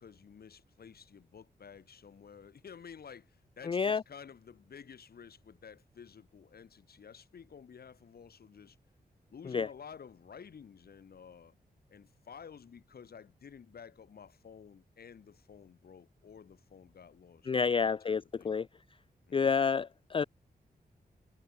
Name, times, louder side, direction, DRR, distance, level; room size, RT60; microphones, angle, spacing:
voice 1, 0.0-8.8 9.3-11.5 11.9-18.5 19.3-19.5, left 7 dB, 75° left, 3.6 m, -52 dB
voice 2, 3.7-4.0 9.5-9.7 17.5-18.7 19.3-20.2, left 5 dB, 35° left, 0.4 m, -29 dB
wide cardioid pair, 110°, 16 cm